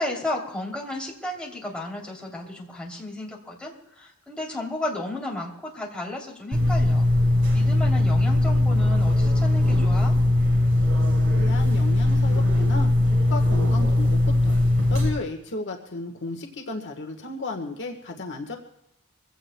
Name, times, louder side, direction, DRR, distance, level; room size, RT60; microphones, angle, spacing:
voice 1, 0.0-7.0 7.5-10.1, left 1 dB, 5° left, -3 dB, 3.0 m, -33 dB
Elevador hall Roomtone, 6.5-15.1, left 1 dB, 65° right, 4.1 m, -20 dB
voice 2, 11.4-14.6 14.9-18.6, left 2 dB, 55° left, 3 dB, 1.4 m, -34 dB
24.0 x 16.5 x 2.2 m, 0.83 s
head